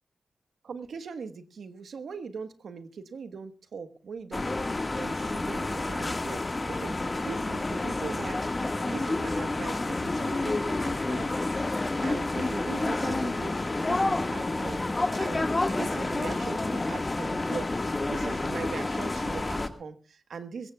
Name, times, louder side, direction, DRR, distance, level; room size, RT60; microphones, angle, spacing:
voice 1, 0.6-8.4 8.9-11.7 12.0-13.6 13.9-14.8 15.2-15.5 15.7-20.7, right 5 dB, 85° right, 9 dB, 1.4 m, -40 dB
sound 1, 4.3-19.7, left 2 dB, 35° left, 1.7 m, -29 dB
21.5 x 18.0 x 2.4 m, 0.33 s
cardioid pair, 50°, 0 cm